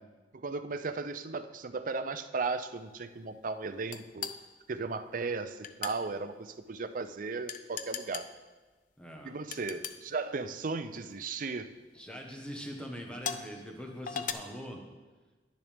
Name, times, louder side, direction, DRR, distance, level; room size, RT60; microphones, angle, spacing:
voice 1, 0.3-4.3 4.7-8.3 9.2-11.7, right 4 dB, 50° right, 9 dB, 0.5 m, -36 dB
sound 1, 3.9-4.4 5.6-6.0 7.5-8.3 9.5-10.0 11.0-11.3 11.9-12.0 13.2-13.5 14.1-14.3, left 7 dB, 50° left, 0.5 m, -37 dB
voice 2, 9.0-9.3 11.9-14.8, equal, 5° left, 1 dB, 1.2 m, -42 dB
10.5 x 10.0 x 3.5 m, 1.3 s
head